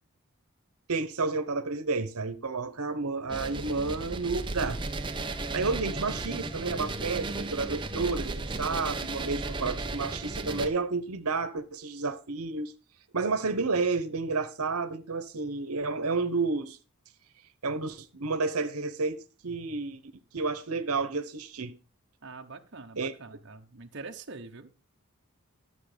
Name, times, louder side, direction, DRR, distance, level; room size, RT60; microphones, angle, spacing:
voice 1, 0.9-4.8 5.5-12.7 13.1-16.8 17.6-20.0 20.3-21.7 23.0-23.1, right 4 dB, 85° right, 1.1 m, -31 dB
sound 1, 3.3-10.7, right 2 dB, 20° right, 0.9 m, -35 dB
voice 2, 22.2-24.7, right 3 dB, 55° right, 1.1 m, -44 dB
12.5 x 7.0 x 5.2 m
head